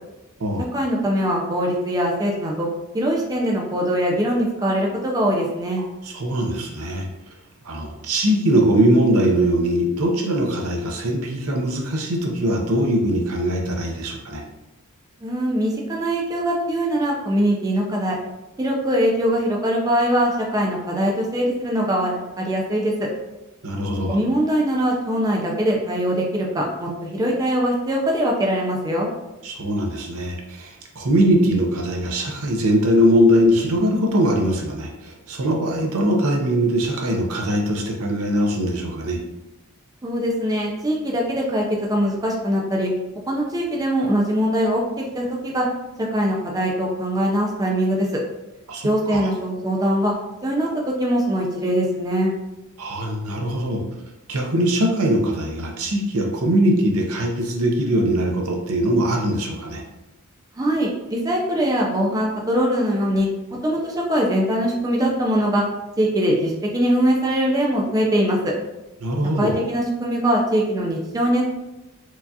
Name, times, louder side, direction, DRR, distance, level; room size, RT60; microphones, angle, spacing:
voice 1, 0.7-2.7 2.9-5.8 15.2-18.2 18.6-23.1 24.1-29.1 40.0-42.9 43.3-44.8 45.1-45.7 46.1-48.1 48.8-50.1 50.4-52.3 60.6-63.3 63.6-65.6 66.0-68.5 69.4-71.4, equal, 15° right, -2 dB, 0.4 m, -22 dB
voice 2, 6.0-7.1 7.6-14.4 23.6-24.2 29.4-39.2 48.7-49.3 52.8-53.8 54.3-59.8 69.0-69.5, equal, 70° right, 1 dB, 0.7 m, -21 dB
4.6 x 2.4 x 2.7 m, 1.0 s
head